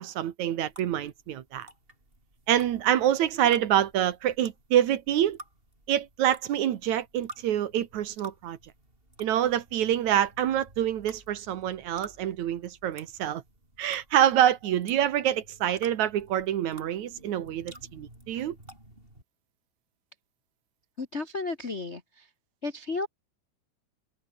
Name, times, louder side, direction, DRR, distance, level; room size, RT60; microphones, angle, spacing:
voice 1, 0.0-1.7 2.5-5.4 5.9-8.6 9.2-13.4 13.8-18.6, right 11 dB, 70° right, 2.6 m, -26 dB
sound 1, 0.7-19.2, right 1 dB, 15° right, 8.0 m, -52 dB
voice 2, 21.0-22.3 22.6-23.1, left 3 dB, 35° left, 1.1 m, -33 dB
omnidirectional pair, 3.5 m